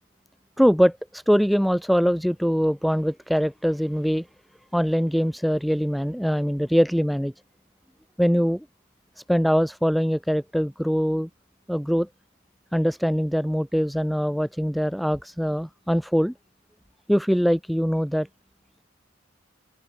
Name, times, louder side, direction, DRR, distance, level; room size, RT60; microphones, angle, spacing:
voice 1, 0.6-4.3 4.7-7.3 8.2-8.6 9.3-11.3 11.7-12.1 12.7-16.3 17.1-18.3, equal, ahead, 5.4 m, -22 dB
open air
head